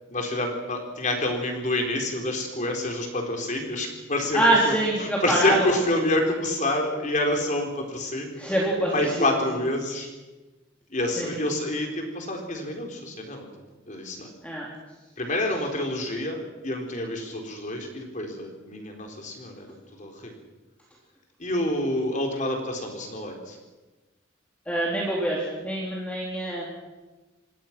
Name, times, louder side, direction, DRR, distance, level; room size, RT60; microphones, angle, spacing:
voice 1, 0.1-4.7 5.0-8.4 8.9-10.1 10.9-13.5 13.9-14.3 15.2-19.7 20.0-20.3 21.4-23.6, left 1 dB, 40° left, 2 dB, 4.1 m, -28 dB
voice 2, 4.3-6.1 8.4-9.3 11.2-11.3 14.4-14.7 24.7-26.7, right 1 dB, 5° left, -4 dB, 3.5 m, -25 dB
27.0 x 20.0 x 6.1 m, 1.2 s
head